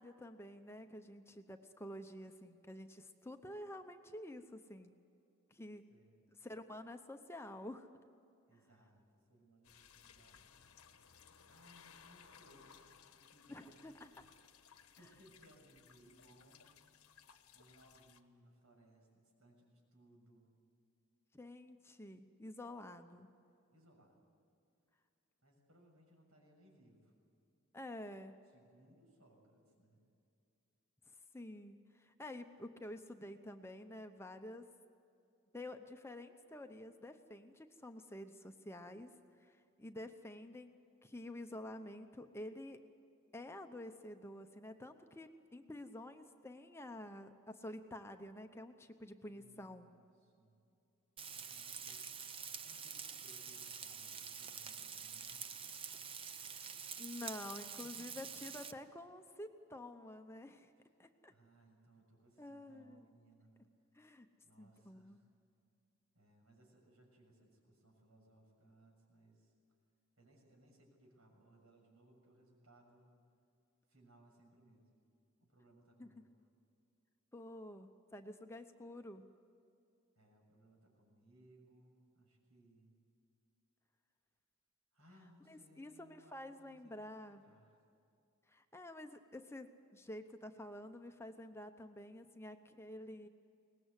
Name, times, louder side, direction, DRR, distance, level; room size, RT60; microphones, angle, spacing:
voice 1, 0.0-4.9 5.5-5.8 6.4-7.9 13.5-14.1 21.3-23.3 27.7-28.4 31.1-34.7 35.5-40.7 41.0-42.8 43.3-49.9 56.3-60.7 61.0-61.3 62.4-63.0 63.9-64.3 64.6-65.2 76.0-76.1 77.3-79.3 85.5-87.4 88.5-93.3, left 1 dB, 10° left, 6 dB, 0.7 m, -50 dB
voice 2, 5.9-6.5 8.5-10.6 11.5-14.1 15.0-16.9 17.5-20.5 23.7-24.2 25.4-27.1 28.5-30.0 49.2-50.6 51.3-52.2 52.6-55.5 57.8-58.3 60.7-60.8 61.3-63.9 64.4-65.3 66.1-69.5 70.2-73.1 73.9-74.9 75.4-76.3 80.1-82.9 84.9-87.8, right 1 dB, 85° right, 1 dB, 6.8 m, -66 dB
sound 1, 9.6-18.2, left 7 dB, 90° left, 1.2 m, -62 dB
Frying (food), 51.2-58.7, right 7 dB, 25° right, 0.6 m, -47 dB
23.0 x 19.5 x 8.2 m, 2.6 s
head